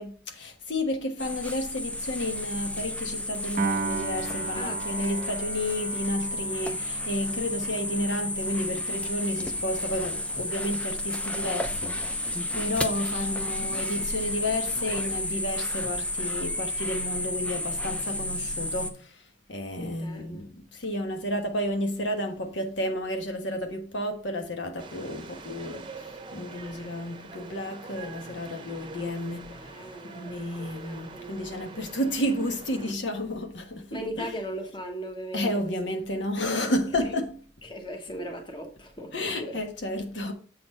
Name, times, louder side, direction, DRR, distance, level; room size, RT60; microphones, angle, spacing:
voice 1, 0.0-29.7 30.0-34.3 35.3-37.4 39.1-40.3, left 1 dB, 70° left, 1.4 m, -31 dB
sound 1, 1.2-18.9, left 1 dB, 5° left, 0.5 m, -32 dB
Piano, 3.6-10.0, right 4 dB, 45° right, 0.5 m, -37 dB
voice 2, 4.5-5.3 19.8-20.5 29.4-30.5 30.8-31.3 33.9-35.7 37.6-39.6, right 1 dB, 25° left, 1.2 m, -38 dB
sound 2, 24.8-32.9, right 3 dB, 25° right, 0.8 m, -44 dB
7.6 x 4.3 x 5.4 m
head